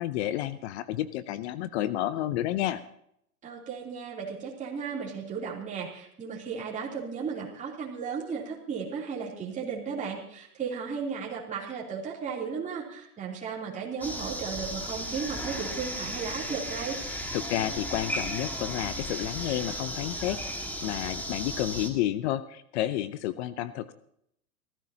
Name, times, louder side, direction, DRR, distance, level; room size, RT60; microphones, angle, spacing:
voice 1, 0.0-2.8 17.1-23.9, left 13 dB, 45° left, 15 dB, 0.8 m, -31 dB
voice 2, 3.4-17.0, right 6 dB, 15° right, -4 dB, 3.3 m, -35 dB
sound 1, 14.0-21.9, equal, 5° left, 1.9 m, -35 dB
27.5 x 13.5 x 2.9 m, 0.72 s
hypercardioid pair, 125°, 46 cm